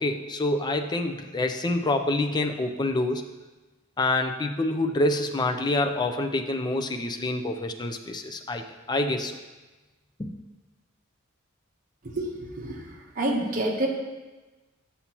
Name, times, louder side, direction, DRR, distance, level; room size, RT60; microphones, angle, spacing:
voice 1, 0.0-3.3 4.0-9.3 10.2-10.3, left 2 dB, 20° left, 5 dB, 0.4 m, -27 dB
voice 2, 13.2-13.9, right 1 dB, 40° right, -1 dB, 1.1 m, -27 dB
8.3 x 7.0 x 2.9 m, 1.2 s
head